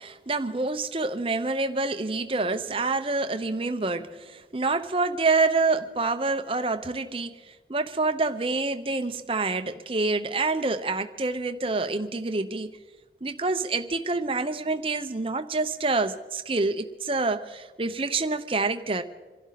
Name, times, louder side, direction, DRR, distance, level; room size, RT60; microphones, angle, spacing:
voice 1, 0.0-12.7 13.2-19.0, right 3 dB, 30° right, 0.8 m, -27 dB
27.5 x 12.0 x 4.1 m
head